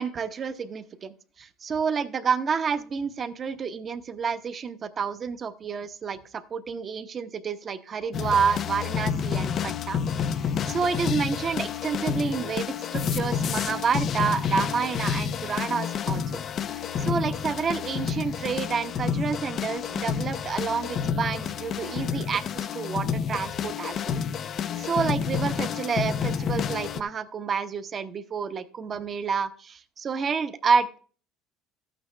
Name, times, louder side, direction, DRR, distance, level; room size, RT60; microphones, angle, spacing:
voice 1, 0.0-16.4 16.7-24.2 24.8-31.0, right 6 dB, 30° right, 10 dB, 0.9 m, -29 dB
sound 1, 8.1-27.0, left 7 dB, 40° left, 0.5 m, -29 dB
13.0 x 8.9 x 3.3 m, 0.40 s
cardioid pair, 140°, 0 cm